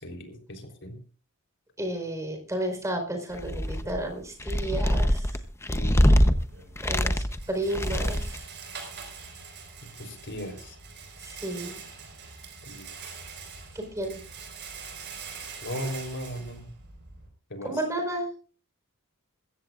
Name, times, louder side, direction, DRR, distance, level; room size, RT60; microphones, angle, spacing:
voice 1, 0.0-0.9 5.7-6.0 10.0-10.7 12.7-12.8 15.6-16.7 17.5-17.7, equal, 55° left, 4 dB, 3.9 m, -37 dB
voice 2, 1.8-5.4 6.8-8.5 11.2-11.8 13.7-14.2 17.6-18.3, right 1 dB, 15° right, 4 dB, 4.4 m, -32 dB
sound 1, 3.3-4.0 4.4-6.3 6.8-7.4 7.7-8.4, equal, 10° left, 0.9 m, -23 dB
Rattle, 6.4-17.3, right 5 dB, 50° right, 5.2 m, -44 dB
22.0 x 15.5 x 2.5 m, 0.37 s
head